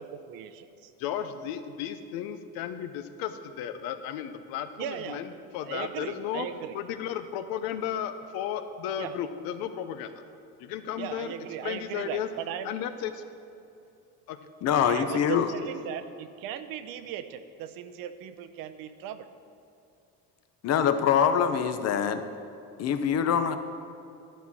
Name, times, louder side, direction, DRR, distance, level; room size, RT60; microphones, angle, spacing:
voice 1, 0.0-0.9 4.8-5.2 5.6-6.8 9.0-9.1 11.0-12.7 14.8-19.3, right 9 dB, 75° right, 10 dB, 0.7 m, -38 dB
voice 2, 1.0-6.5 6.7-10.2 10.6-11.3 11.6-12.3 12.6-13.2 14.3-14.4 14.8-15.0, left 9 dB, 85° left, 10 dB, 0.8 m, -34 dB
voice 3, 14.6-15.5 20.6-22.2 22.8-23.6, left 8 dB, 45° left, 9 dB, 0.7 m, -24 dB
12.5 x 5.6 x 6.1 m, 2.6 s
cardioid pair, 145°, 34 cm